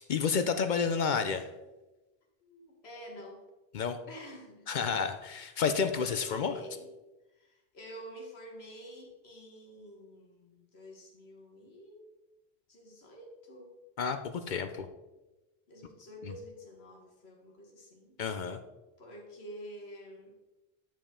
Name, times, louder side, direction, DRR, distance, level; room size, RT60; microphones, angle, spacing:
voice 1, 0.1-1.5 3.7-4.0 4.7-6.6 14.0-14.9 16.2-16.3 18.2-18.6, left 6 dB, 60° left, 9 dB, 0.6 m, -30 dB
voice 2, 2.4-3.4 4.1-4.7 6.0-6.9 7.3-12.1 12.7-13.7 15.7-18.1 19.0-20.3, equal, 80° left, 0 dB, 1.7 m, -48 dB
8.9 x 5.0 x 3.6 m, 1.1 s
omnidirectional pair, 1.1 m